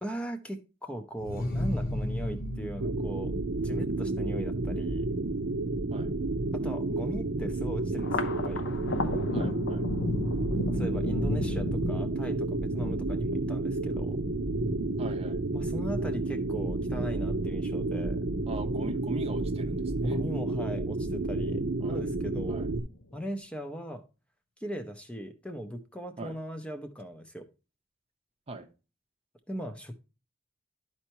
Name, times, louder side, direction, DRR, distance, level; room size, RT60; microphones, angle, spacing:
voice 1, 0.0-3.3 3.6-5.1 6.5-8.6 10.7-14.2 15.5-18.2 20.0-21.6 21.9-22.7 23.1-24.0 24.6-27.5 29.5-29.9, equal, 5° left, 0.6 m, -38 dB
sound 1, 1.2-6.7, left 1 dB, 55° left, 1.0 m, -36 dB
sound 2, 2.8-22.8, right 2 dB, 70° right, 0.7 m, -31 dB
Thunder, 8.0-20.6 21.0-21.8 22.2-23.0, left 2 dB, 85° left, 0.7 m, -35 dB
voice 2, 9.3-9.9 15.0-15.4 18.5-20.2 21.8-22.0 22.5-22.7 26.2-26.4 28.5-28.7, right 2 dB, 35° right, 0.7 m, -40 dB
11.5 x 4.5 x 2.9 m
head